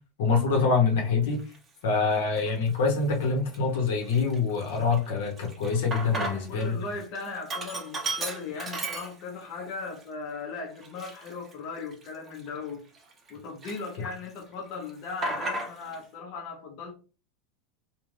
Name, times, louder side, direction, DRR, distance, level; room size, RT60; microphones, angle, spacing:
voice 1, 0.2-1.4 1.8-6.8, left 4 dB, 80° left, 1.0 m, -25 dB
Sink (filling or washing), 1.4-1.6 2.2-2.8 3.2-3.3 3.5-6.7 7.0-9.5 10.0-10.1 10.8-13.3 13.6-14.4 14.7-16.0, right 2 dB, 25° right, 0.8 m, -35 dB
voice 2, 6.1-12.8 13.3-16.9, left 4 dB, 55° left, 0.8 m, -38 dB
2.5 x 2.3 x 3.2 m
hypercardioid pair, 110°, 0 cm